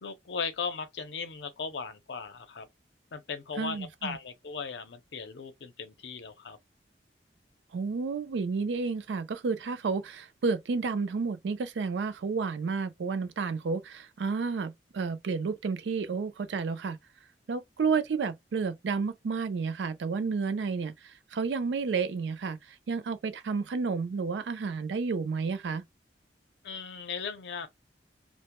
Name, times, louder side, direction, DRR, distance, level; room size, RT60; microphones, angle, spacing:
voice 1, 0.0-2.7 3.1-6.6 26.6-27.7, left 5 dB, 75° left, 0.5 m, -37 dB
voice 2, 3.6-4.2 7.7-17.0 17.5-22.6 22.9-25.8, right 5 dB, 85° right, 0.4 m, -31 dB
2.1 x 2.0 x 2.9 m
head